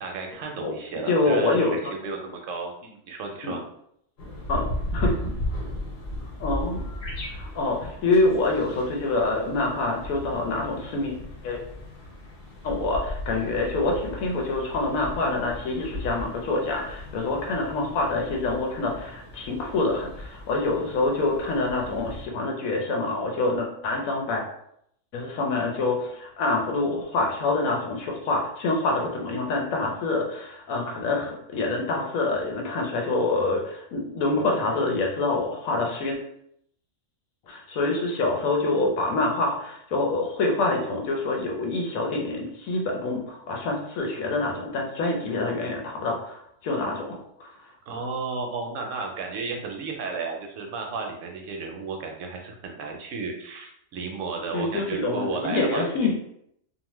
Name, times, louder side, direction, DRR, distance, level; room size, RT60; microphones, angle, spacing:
voice 1, 0.0-3.6 47.9-56.1, right 4 dB, 70° right, 2 dB, 0.9 m, -33 dB
voice 2, 1.1-1.9 3.4-3.6 4.5-5.4 6.4-7.0 7.3-11.1 11.4-11.6 12.6-24.4 25.1-36.2 37.5-47.7 54.4-56.1, left 2 dB, 85° left, 1 dB, 1.1 m, -26 dB
sound 1, 4.2-22.3, left 1 dB, 55° left, 0.9 m, -36 dB
2.7 x 2.2 x 3.0 m, 0.72 s
omnidirectional pair, 1.4 m